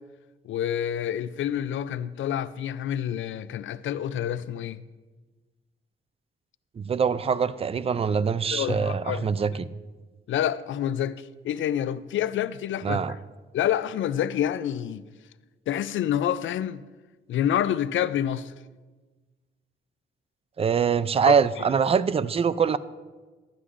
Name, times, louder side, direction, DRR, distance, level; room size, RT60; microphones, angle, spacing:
voice 1, 0.4-4.8 8.5-9.3 10.3-13.2 13.5-15.0 15.7-16.8 17.3-18.5 21.2-21.4, left 10 dB, 70° left, 0.4 m, -28 dB
voice 2, 6.8-9.7 12.8-13.1 20.6-22.8, right 6 dB, 30° right, 0.4 m, -24 dB
12.5 x 9.8 x 2.5 m
cardioid pair, 80°, 20 cm